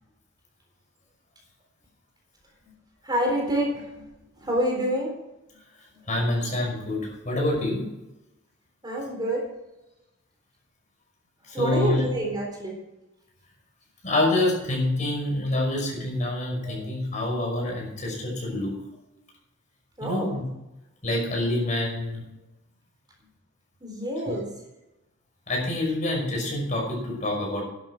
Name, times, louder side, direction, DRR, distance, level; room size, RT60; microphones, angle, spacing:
voice 1, 3.0-4.1 4.4-5.1 5.9-6.0 8.8-9.5 11.5-12.8 16.6-16.8 20.0-20.4 23.8-24.5, right 1 dB, 25° right, 0 dB, 3.8 m, -27 dB
voice 2, 6.1-7.8 11.5-12.1 14.0-18.7 20.0-20.4 21.0-22.2 24.3-24.4 25.5-27.6, left 1 dB, 40° left, -1 dB, 5.8 m, -26 dB
11.5 x 9.6 x 6.0 m, 0.95 s
head